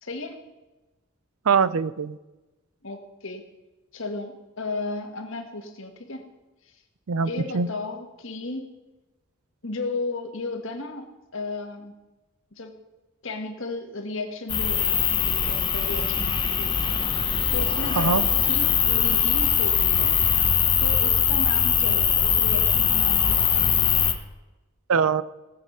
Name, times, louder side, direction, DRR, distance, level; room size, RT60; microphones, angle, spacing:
voice 1, 0.0-0.4 2.8-3.4 3.9-6.2 6.6-6.8 7.2-8.7 9.6-11.9 12.5-12.8 13.2-20.2 20.8-23.8, left 2 dB, 60° left, 5 dB, 1.7 m, -35 dB
voice 2, 1.5-2.2 7.1-7.7 18.0-18.2 24.9-25.2, right 5 dB, 75° right, 17 dB, 0.5 m, -22 dB
sound 1, 14.5-24.1, left 7 dB, 20° left, 1.0 m, -22 dB
18.0 x 7.5 x 5.5 m, 1.1 s
head